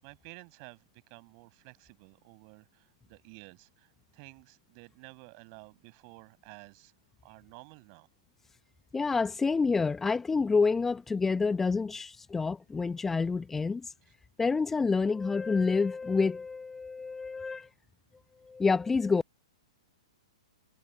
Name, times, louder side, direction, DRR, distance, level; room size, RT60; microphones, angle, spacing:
voice 1, 0.0-6.9 7.2-8.1, right 40 dB or more, 35° right, 7.8 m, -52 dB
voice 2, 8.9-13.9 14.4-17.7 18.4-19.2, left 4 dB, 10° left, 1.2 m, -28 dB
figure-of-eight pair, 110°, 3 cm